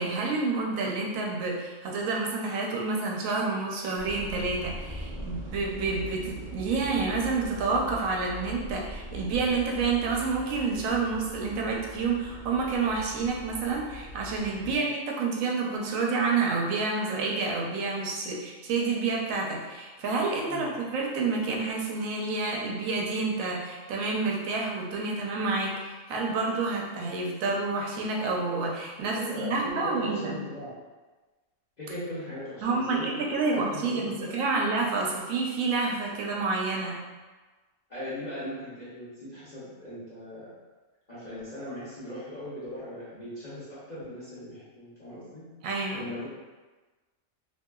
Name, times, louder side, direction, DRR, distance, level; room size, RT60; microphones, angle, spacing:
voice 1, 0.0-30.4 32.6-37.0 45.6-46.1, right 4 dB, 85° right, -1 dB, 1.0 m, -29 dB
sound 1, 4.0-14.8, right 1 dB, 60° right, 0.5 m, -41 dB
voice 2, 29.0-30.7 31.8-34.7 37.9-40.5 41.1-45.5 45.9-46.3, left 1 dB, 40° left, -12 dB, 0.7 m, -39 dB
2.8 x 2.6 x 2.3 m, 1.3 s
omnidirectional pair, 1.4 m